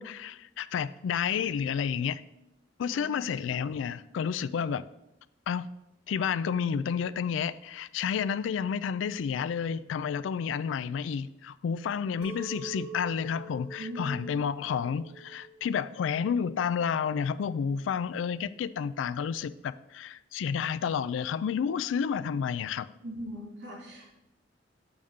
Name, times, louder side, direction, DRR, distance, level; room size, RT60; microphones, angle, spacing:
voice 1, 0.0-2.2 2.8-4.8 5.5-5.6 6.1-22.9, left 7 dB, 85° left, 0.3 m, -30 dB
voice 2, 2.9-3.3 13.8-14.1 23.0-24.1, equal, 80° right, 2.7 m, -40 dB
Chink clink, 12.2-17.4, right 3 dB, 5° right, 1.1 m, -45 dB
7.1 x 3.6 x 6.3 m
head